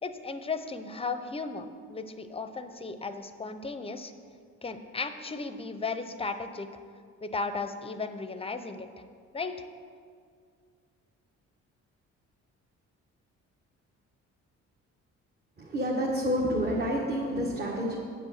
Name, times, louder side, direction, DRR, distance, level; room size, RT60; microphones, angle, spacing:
voice 1, 0.0-4.1 4.6-6.7 7.2-8.9 9.3-9.7, left 4 dB, 20° left, 10 dB, 0.6 m, -35 dB
voice 2, 15.6-18.0, equal, 35° right, -3 dB, 1.4 m, -29 dB
8.0 x 5.4 x 7.2 m, 2.1 s
cardioid pair, 90°, 30 cm